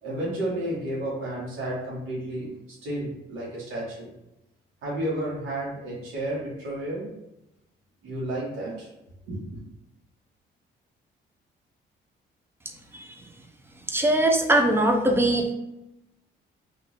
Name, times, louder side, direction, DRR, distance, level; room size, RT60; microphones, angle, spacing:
voice 1, 0.0-2.5 2.8-4.1 4.8-7.1 8.0-8.9 9.3-9.4, right 1 dB, 90° right, -6 dB, 1.4 m, -31 dB
voice 2, 13.9-15.5, right 1 dB, 10° right, 3 dB, 0.6 m, -21 dB
3.0 x 2.8 x 3.9 m, 0.91 s
cardioid pair, 90°, 20 cm